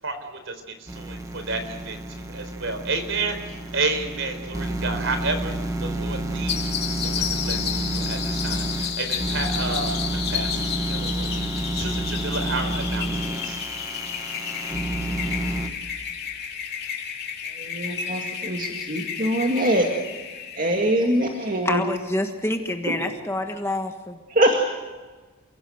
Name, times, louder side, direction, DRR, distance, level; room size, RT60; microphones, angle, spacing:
voice 1, 0.0-5.5 5.8-13.6, right 3 dB, 60° right, 4.3 m, -31 dB
sound 1, 0.9-15.7, right 1 dB, 15° right, 1.5 m, -30 dB
sound 2, 6.5-21.7, left 8 dB, 45° left, 3.1 m, -32 dB
voice 2, 17.6-19.9 20.6-21.8 22.9-23.1 24.4-24.7, right 1 dB, 40° right, 2.2 m, -23 dB
voice 3, 21.6-24.2, left 1 dB, 10° left, 1.4 m, -27 dB
29.5 x 17.0 x 8.0 m
head